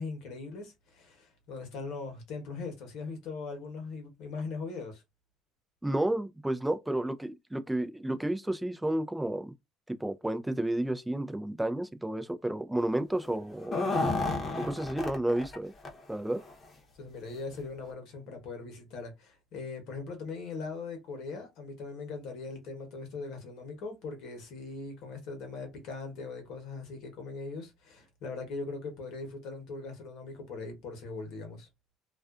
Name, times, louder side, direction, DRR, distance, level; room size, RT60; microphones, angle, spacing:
voice 1, 0.0-5.0 16.9-31.7, left 4 dB, 70° left, 1.0 m, -40 dB
voice 2, 5.8-9.5 9.9-13.9 14.6-15.7 16.1-16.4, right 1 dB, 10° right, 0.4 m, -31 dB
sound 1, 13.5-15.6 15.8-15.9 16.4-16.5 17.4-17.5 17.9-18.0, left 2 dB, 35° left, 0.8 m, -31 dB
2.4 x 2.3 x 2.4 m
supercardioid pair, 80°, 0 cm